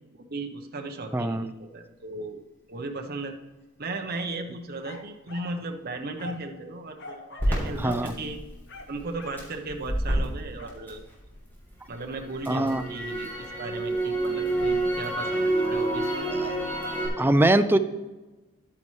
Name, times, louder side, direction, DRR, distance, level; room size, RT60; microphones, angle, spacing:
voice 1, 0.1-2.4 2.7-3.4 3.8-8.4 8.9-11.1 11.9-16.3, right 2 dB, 45° right, 4 dB, 0.9 m, -36 dB
voice 2, 1.1-1.5 7.8-8.1 12.5-12.8 16.3-16.5 17.2-17.8, right 1 dB, 10° right, 10 dB, 0.4 m, -22 dB
sound 1, 4.8-5.6 6.2-6.5 7.0-7.6 7.8-8.1 8.7-9.5 10.6-10.8, left 2 dB, 55° left, 1.3 m, -43 dB
Crackle, 7.4-11.5 11.9-17.1, right 1 dB, 10° left, 3.5 m, -28 dB
11.0 x 9.6 x 3.2 m, 1.1 s
head